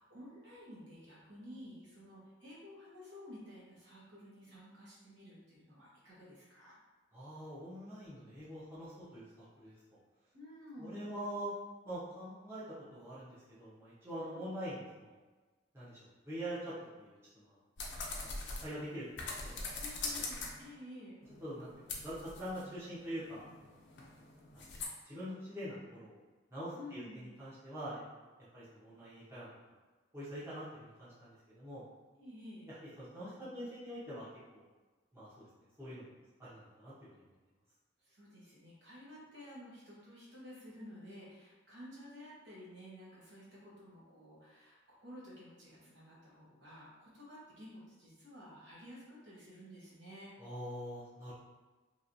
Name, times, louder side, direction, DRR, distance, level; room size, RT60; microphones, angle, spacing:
voice 1, 0.0-6.7 10.3-11.1 14.2-14.5 19.8-21.2 26.7-27.2 32.2-32.7 38.1-50.3, left 1 dB, 60° right, -7 dB, 1.1 m, -52 dB
voice 2, 7.1-9.8 10.8-11.5 11.8-12.6 12.9-15.2 15.7-17.5 18.2-19.1 19.4-19.6 20.1-20.2 21.4-23.8 24.5-24.7 25.0-26.2 26.5-28.0 28.5-29.5 30.1-31.8 32.8-34.3 34.5-34.6 35.1-35.5 35.8-36.1 36.4-36.9 50.4-51.3, equal, 15° right, -11 dB, 0.8 m, -44 dB
sound 1, 17.8-20.7 21.2-24.9, left 3 dB, 65° left, 0.5 m, -43 dB
3.0 x 2.8 x 2.6 m, 1.3 s
head